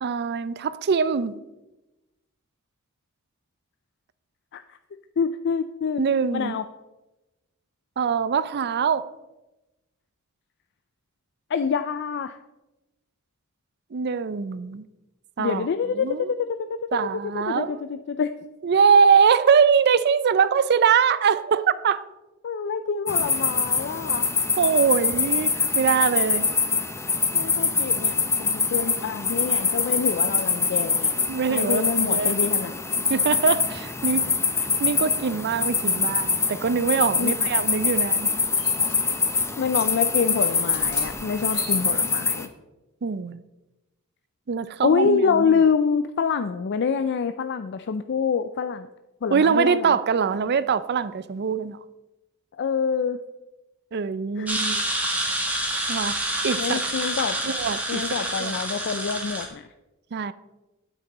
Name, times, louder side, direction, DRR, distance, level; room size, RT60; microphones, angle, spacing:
voice 1, 0.0-1.4 6.0-6.6 8.0-9.1 13.9-14.8 15.4-15.7 16.0-16.3 16.9-17.8 18.6-22.0 24.6-26.5 31.3-32.3 33.1-34.3 34.6-38.3 43.0-43.4 44.5-45.6 49.3-51.8 53.9-54.8 55.9-56.2 56.4-56.8 57.5-58.6 60.1-60.3, right 6 dB, 50° right, 0.4 m, -23 dB
voice 2, 5.2-6.0 6.3-6.6 11.5-12.4 15.4-16.6 17.3-18.3 22.4-24.3 27.3-31.1 31.5-32.7 37.2-37.4 39.6-42.5 44.8-48.9 49.2-50.0 52.6-53.2 54.4-54.5 56.6-57.6 57.9-59.7, left 6 dB, 50° left, 0.4 m, -26 dB
sound 1, 23.1-42.5, left 5 dB, 10° left, 0.6 m, -24 dB
sound 2, 37.1-42.2, left 2 dB, 70° left, 2.7 m, -45 dB
sound 3, 54.5-59.5, right 1 dB, 5° right, 1.6 m, -27 dB
9.3 x 8.8 x 4.1 m
head